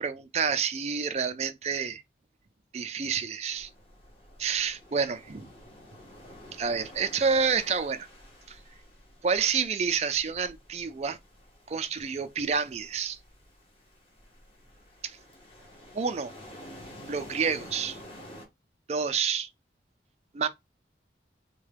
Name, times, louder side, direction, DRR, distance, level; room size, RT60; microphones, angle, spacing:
voice 1, 0.0-2.0 2.7-3.7 4.4-5.5 6.5-8.1 8.5-8.6 9.2-11.2 11.7-13.2 15.9-16.3 17.1-18.0 18.9-19.5 20.3-20.5, right 6 dB, 35° right, 0.3 m, -28 dB
sound 1, 3.5-18.5, equal, 30° left, 1.0 m, -50 dB
3.6 x 2.2 x 3.2 m
head